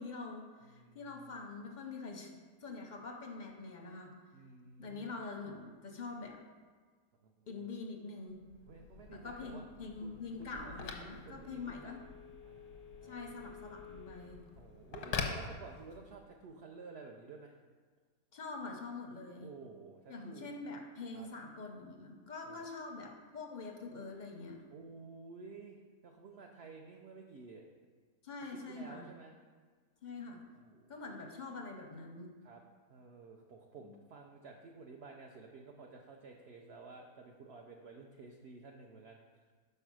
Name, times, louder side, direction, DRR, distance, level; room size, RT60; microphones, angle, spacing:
voice 1, 0.0-2.3 2.6-4.1 4.8-6.4 7.5-8.4 9.1-12.0 13.0-14.4 18.3-19.5 20.1-24.7 28.2-29.1 30.0-30.4 30.9-32.3 33.8-34.0, left 3 dB, 45° left, 2 dB, 0.6 m, -45 dB
voice 2, 0.6-1.6 4.3-5.1 7.2-7.6 8.7-9.7 10.0-10.9 11.2-12.1 12.4-13.3 14.6-17.6 19.4-20.5 21.1-21.3 22.5-22.7 24.7-27.7 28.5-29.3 30.6-31.0 32.4-32.6 32.9-39.2, right 4 dB, 65° right, 1 dB, 0.6 m, -53 dB
Telephone, 8.4-16.2, left 5 dB, 90° left, 1.3 m, -45 dB
5.5 x 4.5 x 6.1 m, 1.5 s
omnidirectional pair, 1.6 m